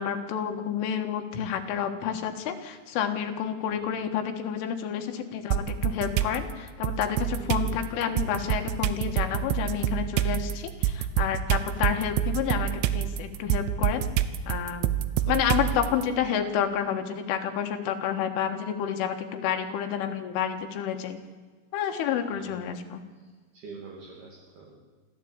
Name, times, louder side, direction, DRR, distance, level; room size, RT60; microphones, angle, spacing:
voice 1, 0.0-14.0 14.5-14.9 15.3-21.2 21.7-23.0, left 8 dB, 85° left, 6 dB, 4.1 m, -29 dB
sound 1, 5.5-6.4 6.8-16.0, right 11 dB, 75° right, 2.6 m, -27 dB
voice 2, 7.3-7.7 15.7-15.8 22.3-22.6 23.5-24.8, right 5 dB, 60° right, -3 dB, 4.3 m, -44 dB
26.5 x 14.5 x 8.8 m, 1.4 s
omnidirectional pair, 5.5 m